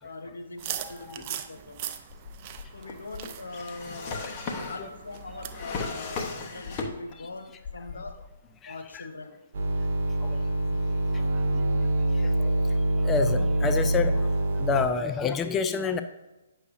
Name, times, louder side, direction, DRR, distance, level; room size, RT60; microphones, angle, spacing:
voice 1, 0.0-1.9 2.7-4.3 4.5-8.2 8.7-9.5, left 3 dB, 85° left, 6 dB, 1.0 m, -41 dB
sound 1, 0.6-5.6, right 10 dB, 40° right, 0.5 m, -40 dB
voice 2, 0.8-1.2 4.5-4.9 7.2-7.3 8.6-9.1 10.2-10.4 11.5-11.9 12.1-12.5 13.0-14.3 14.6-16.0, left 5 dB, 15° left, 8 dB, 0.4 m, -29 dB
Drawer open or close, 2.1-7.3 7.6-8.4, left 4 dB, 35° left, 1.0 m, -36 dB
sound 2, 9.5-14.9, right 2 dB, 55° right, 1.1 m, -25 dB
9.2 x 6.4 x 2.7 m, 1.0 s
hypercardioid pair, 135°, 0 cm